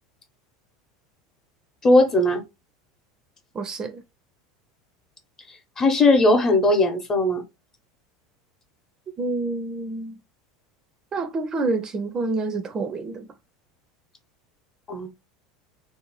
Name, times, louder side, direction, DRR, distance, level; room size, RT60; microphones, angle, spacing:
voice 1, 1.8-2.4 5.8-7.4 14.9-15.1, left 2 dB, 25° left, 0.8 m, -18 dB
voice 2, 3.5-4.0 9.2-10.2 11.1-13.3, right 3 dB, 35° right, 0.5 m, -28 dB
2.7 x 2.0 x 3.0 m
hypercardioid pair, 85°, 2 cm